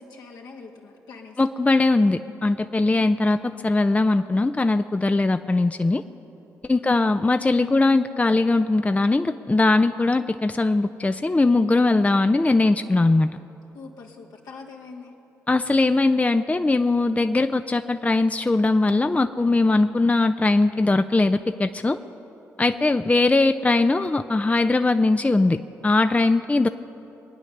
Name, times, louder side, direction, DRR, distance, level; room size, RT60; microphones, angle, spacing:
voice 1, 0.0-1.4 2.9-3.4 6.7-7.0 13.7-15.1 22.9-23.0, left 4 dB, 70° left, 0 dB, 2.0 m, -43 dB
voice 2, 1.4-6.0 6.6-13.3 15.5-22.0 22.6-25.6 25.8-26.7, left 2 dB, 20° left, 9 dB, 0.6 m, -20 dB
22.0 x 9.6 x 6.6 m, 3.0 s
hypercardioid pair, 45°, 7 cm